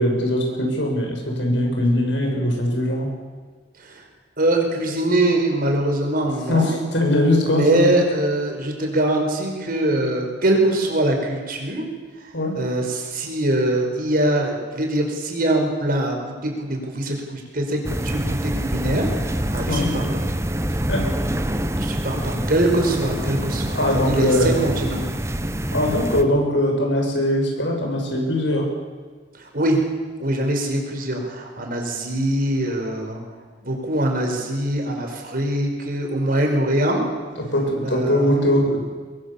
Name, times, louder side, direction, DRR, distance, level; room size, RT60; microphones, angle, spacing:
voice 1, 0.0-3.1 6.5-7.9 12.3-12.5 19.7-19.9 20.9-21.0 23.8-24.6 25.7-28.7 37.5-38.8, left 1 dB, 80° left, 1 dB, 6.9 m, -21 dB
voice 2, 4.4-6.8 7.5-11.9 12.6-20.2 21.8-23.8 24.1-25.0 29.4-29.8 30.2-33.2 33.6-37.1 37.8-38.4, right 1 dB, 50° right, 2 dB, 5.2 m, -23 dB
sound 1, 17.8-26.2, right 1 dB, 15° right, 1.2 m, -26 dB
23.0 x 22.5 x 7.3 m, 1.5 s
head